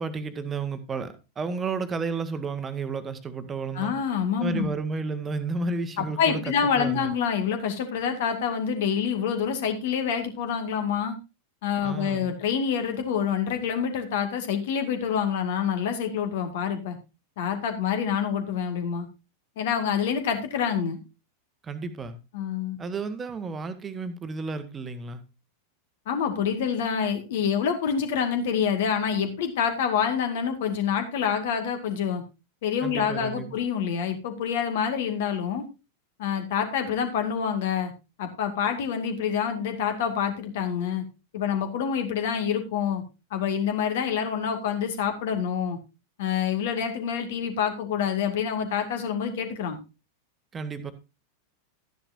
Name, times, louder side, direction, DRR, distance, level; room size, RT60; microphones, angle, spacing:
voice 1, 0.0-3.9 4.4-7.1 11.8-12.4 21.6-22.2 22.8-25.2 32.8-33.6 50.5-50.9, right 4 dB, 20° right, 1.3 m, -32 dB
voice 2, 3.7-4.7 6.0-11.2 11.6-17.0 17.4-19.1 19.6-21.0 22.3-22.8 26.1-32.2 32.6-35.7 36.2-37.9 38.2-41.0 41.3-43.0 43.3-45.8 46.2-49.8, left 7 dB, 55° left, 2.1 m, -27 dB
13.0 x 10.0 x 2.7 m
figure-of-eight pair, 90°, 0 cm